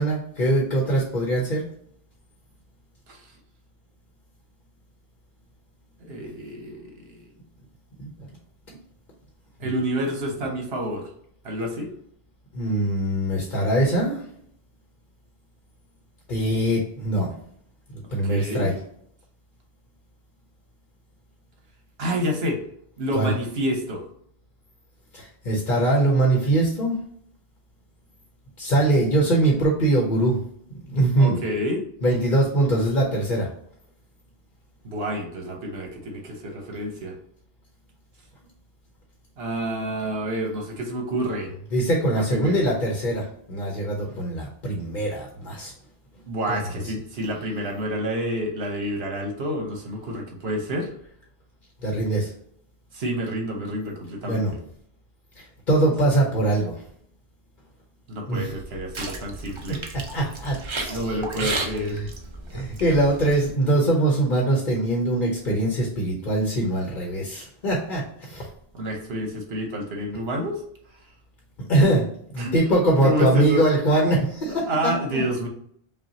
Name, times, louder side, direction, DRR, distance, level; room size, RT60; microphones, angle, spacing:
voice 1, 0.0-1.7 8.0-8.1 12.5-14.2 16.3-17.3 18.1-18.7 23.1-23.3 25.1-27.0 28.6-30.4 30.9-31.4 32.0-33.5 41.7-45.7 46.5-46.6 51.8-52.3 54.2-54.5 55.4-56.8 58.3-58.5 59.7-59.8 60.1-61.5 61.9-62.1 62.5-68.5 71.7-75.2, right 1 dB, 50° left, -1 dB, 1.0 m, -22 dB
voice 2, 6.0-7.3 9.6-11.1 11.4-11.9 18.2-18.7 22.0-22.6 23.0-24.0 31.2-31.9 34.8-37.2 39.4-41.5 42.1-42.6 46.3-50.9 52.9-54.6 58.1-59.8 60.9-62.0 68.7-70.6 72.4-72.5 73.0-73.6 74.5-75.5, equal, 75° right, 2 dB, 1.2 m, -28 dB
sound 1, 58.5-63.5, right 3 dB, 35° right, 0.5 m, -34 dB
5.4 x 2.4 x 2.8 m, 0.66 s
omnidirectional pair, 1.0 m